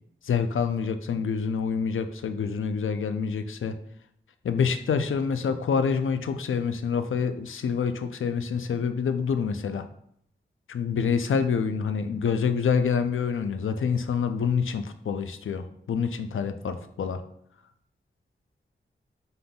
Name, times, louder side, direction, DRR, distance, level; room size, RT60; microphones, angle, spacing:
voice 1, 0.2-3.8 4.4-9.9 10.7-17.2, left 6 dB, 75° left, 9 dB, 0.4 m, -27 dB
5.3 x 3.8 x 2.3 m, 0.70 s
wide cardioid pair, 65°, 21 cm